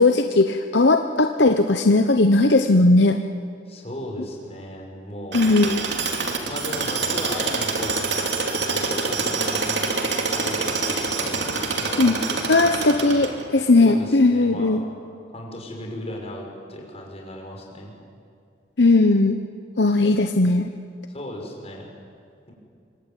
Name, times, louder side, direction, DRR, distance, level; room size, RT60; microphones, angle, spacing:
voice 1, 0.0-3.2 5.3-5.8 12.0-12.1 12.5-14.8 18.8-19.4 19.8-20.7, left 2 dB, 70° left, 6 dB, 1.0 m, -18 dB
voice 2, 3.7-5.5 6.5-9.9 10.3-12.7 13.8-14.8 15.3-17.9 21.1-21.9, left 1 dB, 35° left, 0 dB, 6.1 m, -36 dB
Tools, 5.3-13.6, right 4 dB, 70° right, 3.0 m, -26 dB
25.0 x 24.5 x 9.3 m, 2.3 s
head